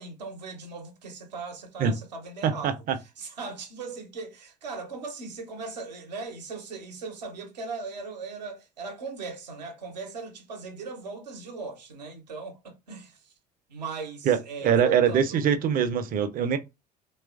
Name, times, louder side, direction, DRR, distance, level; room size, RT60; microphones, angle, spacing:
voice 1, 0.0-2.8 3.2-13.3 13.7-15.5, right 4 dB, 80° right, 0.7 m, -38 dB
voice 2, 2.4-3.0 14.2-16.6, right 8 dB, 45° right, 0.5 m, -23 dB
3.0 x 2.3 x 2.3 m
figure-of-eight pair, 60°, 21 cm